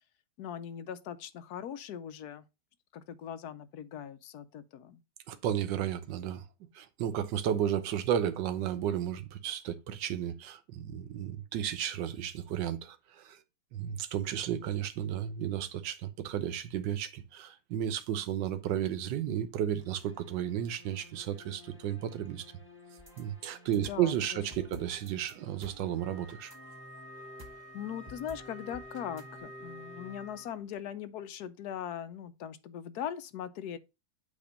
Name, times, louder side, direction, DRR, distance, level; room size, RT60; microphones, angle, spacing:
voice 1, 0.4-2.4 2.9-5.0 23.9-24.1 24.7-24.8 27.7-33.8, left 9 dB, 70° left, 1.1 m, -40 dB
voice 2, 5.3-6.4 6.7-13.4 13.7-22.4 23.2-26.5, right 10 dB, 85° right, 1.4 m, -33 dB
sound 1, 19.8-30.9, equal, 10° left, 0.8 m, -54 dB
sound 2, 23.0-29.4, left 1 dB, 20° right, 0.6 m, -54 dB
Wind instrument woodwind instrument, 26.0-30.7, left 1 dB, 50° right, 2.6 m, -51 dB
8.5 x 2.9 x 5.1 m
omnidirectional pair, 1.9 m